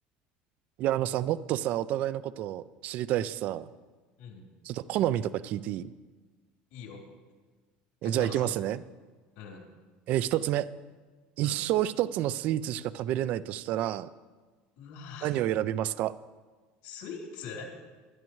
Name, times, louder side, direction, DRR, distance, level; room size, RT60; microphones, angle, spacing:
voice 1, 0.8-3.7 4.6-5.9 8.0-8.8 10.1-10.7 11.4-14.1 15.2-16.1, right 12 dB, 45° right, 16 dB, 0.4 m, -29 dB
voice 2, 6.7-7.0 8.0-8.5 9.4-9.6 11.4-11.6 14.8-15.3 16.8-17.7, left 5 dB, 85° left, 0 dB, 3.5 m, -42 dB
23.0 x 11.0 x 3.1 m, 1.4 s
cardioid pair, 165°, 4 cm